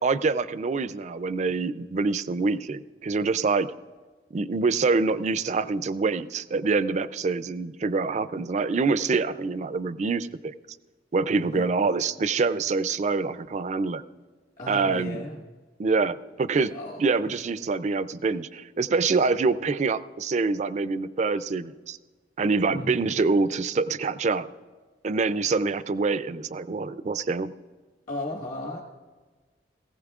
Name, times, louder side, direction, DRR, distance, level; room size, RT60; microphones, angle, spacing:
voice 1, 0.0-3.7 4.3-10.5 11.1-14.0 14.7-15.2 15.8-16.7 17.0-22.0 22.4-24.5 25.0-27.5, right 4 dB, 40° right, 14 dB, 0.4 m, -25 dB
voice 2, 11.3-11.7 14.6-15.4 16.5-17.3 22.7-23.1 28.1-28.8, left 1 dB, 50° left, -4 dB, 1.4 m, -36 dB
18.5 x 16.0 x 2.4 m, 1.3 s
head